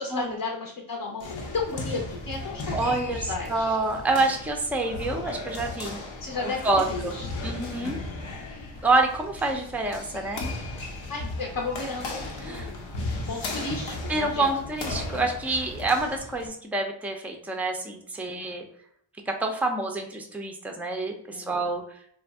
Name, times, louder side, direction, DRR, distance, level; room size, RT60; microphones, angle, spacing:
voice 1, 0.0-3.8 6.2-8.4 10.7-14.5 18.3-18.5 21.3-21.6, left 3 dB, 50° left, 0 dB, 0.7 m, -35 dB
sound 1, 1.2-16.5, left 2 dB, 80° left, 0.7 m, -36 dB
voice 2, 2.7-6.0 6.6-7.1 7.4-8.0 8.8-10.5 12.4-12.7 14.1-18.6 19.3-21.8, right 2 dB, 5° right, 4 dB, 0.4 m, -27 dB
2.5 x 2.0 x 3.4 m, 0.64 s
cardioid pair, 45°, 46 cm